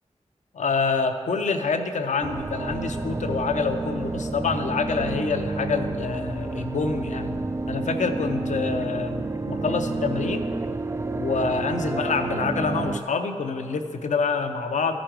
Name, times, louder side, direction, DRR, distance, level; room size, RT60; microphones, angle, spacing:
voice 1, 0.5-7.4 7.7-10.6 11.1-15.0, left 4 dB, 80° left, 7 dB, 0.6 m, -27 dB
sound 1, 2.2-13.0, right 3 dB, 25° right, 0.3 m, -30 dB
13.5 x 5.1 x 4.6 m, 2.2 s
cardioid pair, 45°, 12 cm